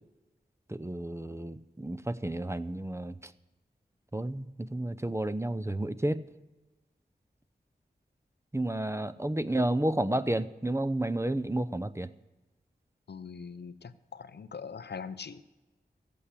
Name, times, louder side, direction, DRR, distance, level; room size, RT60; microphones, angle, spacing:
voice 1, 0.7-3.3 4.1-6.2 8.5-12.1, right 1 dB, 15° right, 13 dB, 0.7 m, -31 dB
voice 2, 13.1-15.4, left 6 dB, 75° left, 13 dB, 0.7 m, -42 dB
14.5 x 8.6 x 8.4 m, 1.1 s
cardioid pair, 40°, 17 cm